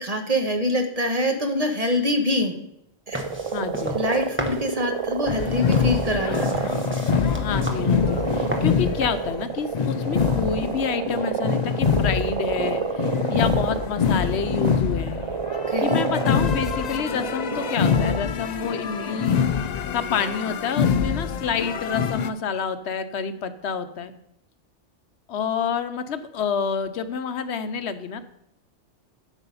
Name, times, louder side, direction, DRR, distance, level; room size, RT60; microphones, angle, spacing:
voice 1, 0.0-2.5 3.1-3.3 3.9-6.7 15.7-16.0, left 1 dB, 35° right, 4 dB, 1.2 m, -25 dB
sound 1, 3.1-9.3, right 1 dB, 10° right, 1.1 m, -35 dB
sound 2, 3.1-18.2, right 6 dB, 55° right, 0.3 m, -30 dB
voice 2, 3.5-4.0 7.4-15.3 15.8-19.4 19.9-24.1 25.3-28.2, left 6 dB, 75° left, 11 dB, 1.0 m, -28 dB
sound 3, 5.3-22.3, left 7 dB, 55° left, 0.5 m, -25 dB
8.2 x 8.1 x 5.5 m, 0.79 s
omnidirectional pair, 1.1 m